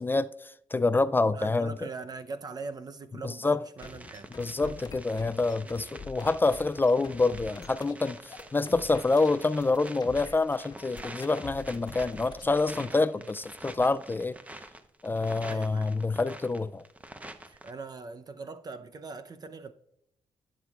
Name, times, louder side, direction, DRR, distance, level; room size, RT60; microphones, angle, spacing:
voice 1, 0.0-1.7 3.2-3.6 4.4-14.3 15.0-16.8, left 3 dB, 20° left, 0.3 m, -27 dB
voice 2, 1.1-4.3 4.6-4.8 5.6-6.0 12.9-13.3 15.4-15.9 17.4-19.7, right 4 dB, 40° right, 0.6 m, -42 dB
sound 1, 3.8-12.8, left 4 dB, 40° left, 1.4 m, -46 dB
sound 2, 3.8-17.7, right 1 dB, 15° right, 0.9 m, -47 dB
16.5 x 7.3 x 2.4 m
cardioid pair, 90°, 10 cm